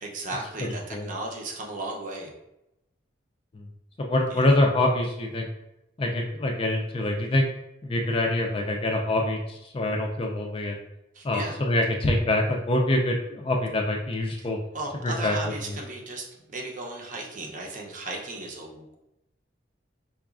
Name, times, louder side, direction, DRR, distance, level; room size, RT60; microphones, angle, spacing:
voice 1, 0.0-2.3 4.3-4.6 11.1-11.6 14.4-14.5 14.7-18.9, right 2 dB, 45° right, 0 dB, 0.6 m, -36 dB
voice 2, 4.0-5.5 6.0-7.5 7.8-10.8 11.2-14.6 15.0-15.5, left 1 dB, 30° left, 2 dB, 0.4 m, -25 dB
4.7 x 2.3 x 2.4 m, 0.87 s
head